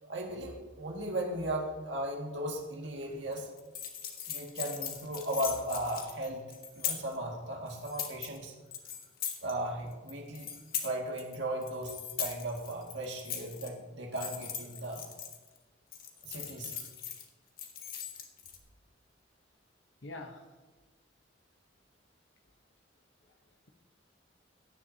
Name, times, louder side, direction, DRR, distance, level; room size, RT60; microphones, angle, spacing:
voice 1, 0.0-3.5 4.3-6.5 6.7-8.5 9.4-10.5 10.8-15.0 16.2-16.9, right 1 dB, 75° right, 0 dB, 2.0 m, -36 dB
sound 1, 3.3-7.2 7.7-8.4 8.7-9.5 9.9-11.4 11.6-13.7 14.1-15.6 15.9-17.2 17.6-18.6, left 8 dB, 50° left, 1.4 m, -40 dB
voice 2, 20.0-20.6 23.2-23.7, left 2 dB, 75° left, 4 dB, 1.1 m, -47 dB
16.5 x 10.5 x 2.8 m, 1.2 s
head